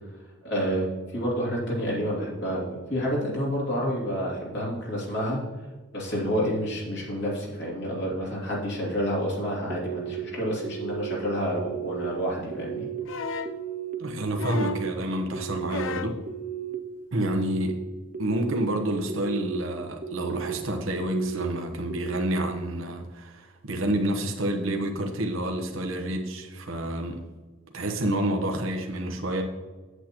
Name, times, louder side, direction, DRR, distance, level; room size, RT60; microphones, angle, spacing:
voice 1, 0.4-5.4 5.9-12.9, equal, 60° left, -5 dB, 2.6 m, -29 dB
sound 1, 9.7-10.2 10.6-11.1 11.6-12.0 12.5-13.0 13.4-13.9 14.4-14.9 15.3-15.8 16.3-16.7 17.2-17.7 18.1-18.6 19.1-19.6 20.0-20.5 21.0-21.5 21.9-22.4, right 10 dB, 40° right, 0.6 m, -35 dB
sound 2, 13.0-13.6 14.4-14.9 15.7-16.2 17.4-17.5, left 4 dB, 75° left, 0.5 m, -33 dB
voice 2, 14.0-16.2 17.1-17.8 18.2-27.2 27.7-29.4, right 1 dB, 80° right, 2 dB, 1.0 m, -29 dB
8.3 x 8.1 x 3.0 m, 1.3 s
head